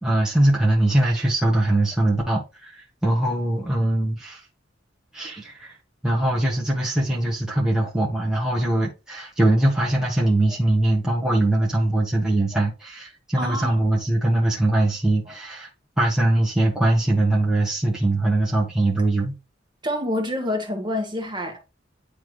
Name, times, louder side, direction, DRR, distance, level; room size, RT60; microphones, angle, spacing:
voice 1, 0.0-4.4 5.1-5.7 6.0-15.7 16.0-19.3, right 1 dB, 5° right, 1.3 m, -21 dB
voice 2, 13.3-13.8 15.3-15.4 19.8-21.6, left 1 dB, 25° right, 1.5 m, -27 dB
9.4 x 3.4 x 3.3 m
head